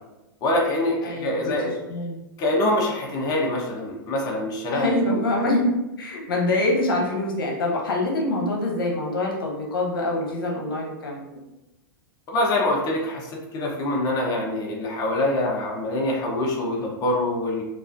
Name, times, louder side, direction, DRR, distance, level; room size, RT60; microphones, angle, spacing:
voice 1, 0.4-1.7 2.4-5.2 12.3-17.6, left 1 dB, 35° left, -1 dB, 0.9 m, -25 dB
voice 2, 1.0-2.2 4.7-5.7 6.0-11.3, left 1 dB, 80° left, -1 dB, 0.9 m, -25 dB
4.7 x 2.5 x 2.5 m, 0.99 s
hypercardioid pair, 115°, 12 cm